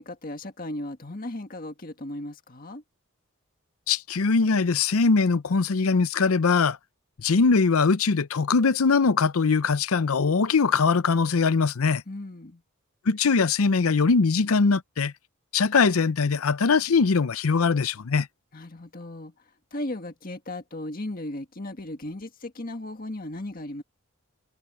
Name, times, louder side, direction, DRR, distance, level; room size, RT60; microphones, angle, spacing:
voice 1, 0.0-2.8 12.1-12.6 18.5-23.8, left 1 dB, 40° left, 1.8 m, -36 dB
voice 2, 3.9-6.8 7.2-12.0 13.1-15.1 15.5-18.3, left 4 dB, 90° left, 0.6 m, -21 dB
head